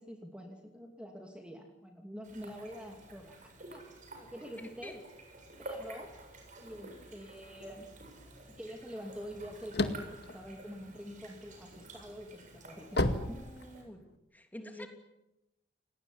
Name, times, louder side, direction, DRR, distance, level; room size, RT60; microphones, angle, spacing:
voice 1, 0.0-3.9 4.2-5.0 5.6-6.1 6.6-7.9 8.5-13.4 14.6-14.9, equal, 5° right, 3 dB, 2.6 m, -46 dB
sound 1, 2.2-13.8, right 2 dB, 45° right, 7.7 m, -51 dB
voice 2, 4.6-5.0 13.0-14.0 14.3-14.9, equal, 10° left, 5 dB, 3.3 m, -49 dB
sound 2, 9.2-11.4 11.9-14.1, left 2 dB, 65° left, 2.1 m, -32 dB
28.5 x 19.0 x 9.9 m, 0.91 s
head